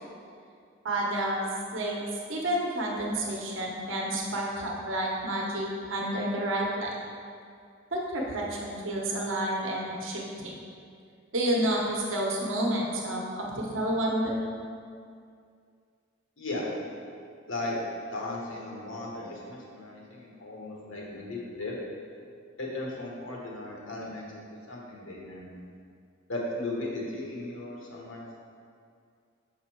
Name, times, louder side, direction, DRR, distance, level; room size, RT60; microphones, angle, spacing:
voice 1, 0.8-1.4 1.7-2.0 2.3-6.9 7.9-10.5 11.3-14.4, right 1 dB, 80° right, -2 dB, 0.9 m, -30 dB
voice 2, 16.4-16.7 17.5-17.8 18.1-21.8 22.6-24.4 24.7-25.6 26.3-28.4, left 2 dB, 90° left, -3 dB, 1.3 m, -36 dB
6.2 x 4.1 x 4.4 m, 2.3 s
head